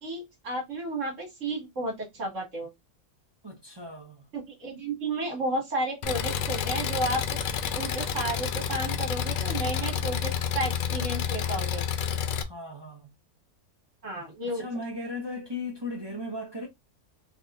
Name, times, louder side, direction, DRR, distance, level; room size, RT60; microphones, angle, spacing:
voice 1, 0.0-2.7 4.3-7.4 7.7-11.8 14.0-14.6, right 2 dB, 55° right, 1.9 m, -32 dB
voice 2, 3.4-4.2 12.4-13.1 14.5-16.7, left 2 dB, 20° right, 0.8 m, -37 dB
Engine, 6.0-12.4, left 8 dB, 75° left, 1.0 m, -29 dB
3.6 x 3.0 x 2.4 m
omnidirectional pair, 1.6 m